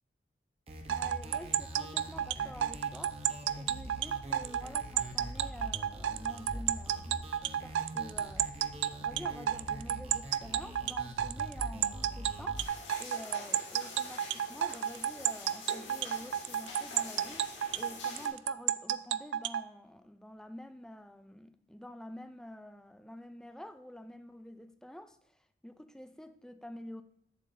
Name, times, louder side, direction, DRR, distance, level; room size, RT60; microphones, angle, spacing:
sound 1, 0.7-12.6, equal, 35° right, 0.8 m, -44 dB
voice 1, 0.9-3.2 3.5-8.5 9.0-12.6 13.0-27.0, left 1 dB, 5° left, 9 dB, 0.4 m, -48 dB
sound 2, 0.9-19.6, right 10 dB, 80° right, 0.3 m, -31 dB
sound 3, 12.6-18.3, left 3 dB, 90° left, 2.2 m, -46 dB
8.3 x 7.4 x 2.6 m, 0.76 s
head